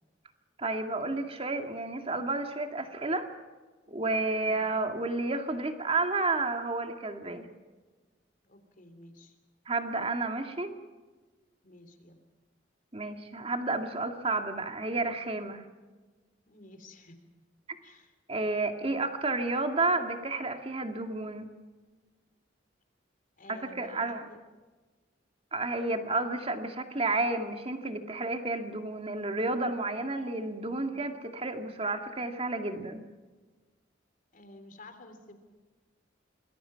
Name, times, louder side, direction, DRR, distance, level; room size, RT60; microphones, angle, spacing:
voice 1, 0.6-3.3 3.9-7.5 9.7-10.7 12.9-15.7 18.3-21.5 23.5-24.2 25.5-33.0, right 2 dB, 30° right, 5 dB, 2.2 m, -31 dB
voice 2, 8.4-9.4 11.6-12.2 16.5-17.2 17.8-18.1 23.4-24.4 34.3-35.3, left 2 dB, 45° left, 7 dB, 3.3 m, -52 dB
27.0 x 21.5 x 5.9 m, 1.3 s
head